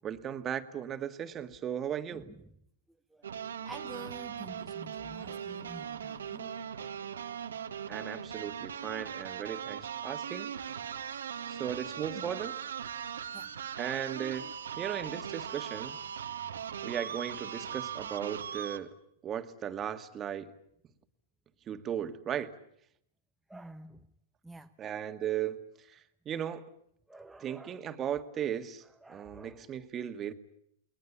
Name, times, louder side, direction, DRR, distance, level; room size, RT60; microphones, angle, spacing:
voice 1, 0.0-2.2 7.9-10.5 11.5-12.5 13.8-16.0 16.8-18.9 19.2-20.5 21.7-22.5 24.8-25.6 25.9-26.0 26.3-26.6 27.4-28.8 29.1-30.3, right 9 dB, 30° right, 9 dB, 1.9 m, -36 dB
voice 2, 2.1-2.4 3.1-3.3 3.6-6.6 12.1-12.3 13.3-13.5 23.5-24.1 24.4-24.7 27.1-27.8 28.8-29.9, right 2 dB, 5° right, 4 dB, 1.0 m, -49 dB
sound 1, 3.2-18.8, right 8 dB, 85° right, 1.7 m, -39 dB
29.5 x 20.5 x 8.5 m, 0.72 s
hypercardioid pair, 115°, 0 cm